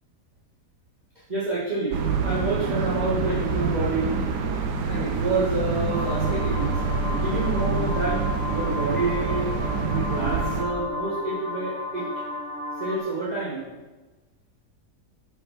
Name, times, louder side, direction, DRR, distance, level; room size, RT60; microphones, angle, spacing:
voice 1, 1.3-1.9 2.2-4.1 4.9-6.8 7.2-8.2 8.5-9.5 9.9-12.1 12.8-13.6, right 3 dB, 25° right, -9 dB, 2.0 m, -28 dB
sound 1, 1.9-10.6, right 4 dB, 70° right, 1.5 m, -26 dB
sound 2, 5.9-13.0, left 2 dB, 15° left, 3.0 m, -34 dB
11.5 x 5.8 x 6.1 m, 1.2 s
omnidirectional pair, 1.8 m